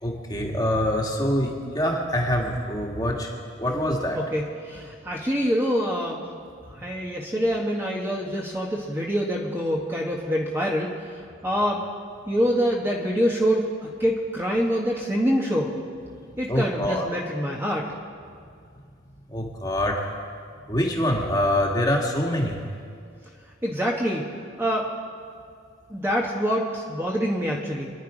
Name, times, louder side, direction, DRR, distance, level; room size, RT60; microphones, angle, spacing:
voice 1, 0.0-3.3 3.6-4.2 16.5-17.1 19.3-20.0 20.7-22.6, left 1 dB, 20° left, 0 dB, 1.7 m, -25 dB
voice 2, 4.1-6.3 6.8-10.9 11.4-11.8 12.3-15.7 16.4-17.9 23.6-24.3 24.6-24.9 25.9-27.9, equal, 10° right, -2 dB, 1.2 m, -25 dB
26.0 x 10.5 x 5.0 m, 2.2 s
head